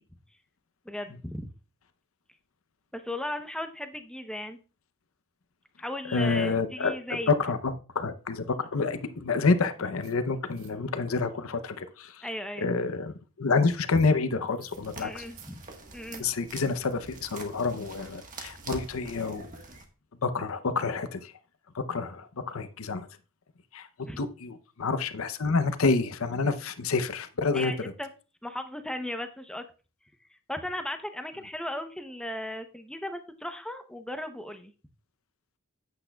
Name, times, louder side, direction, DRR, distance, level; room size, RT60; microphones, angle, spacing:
voice 1, 0.8-1.5 2.9-4.6 5.8-7.3 12.2-12.7 15.0-15.5 15.9-16.2 24.0-24.2 27.5-28.1 28.4-29.6 30.5-34.7, left 1 dB, 5° left, 0.7 m, -36 dB
voice 2, 6.1-6.9 7.3-12.3 12.6-15.2 16.2-19.5 20.2-21.3 21.7-23.1 23.7-27.9, left 4 dB, 65° left, 0.7 m, -28 dB
sound 1, 10.0-10.1 10.5-10.7 14.0-14.1 14.5-14.8 15.2-15.5 15.9-16.2, right 9 dB, 75° right, 1.4 m, -53 dB
sound 2, 14.7-19.8, right 3 dB, 35° right, 1.4 m, -45 dB
9.9 x 8.5 x 2.3 m
head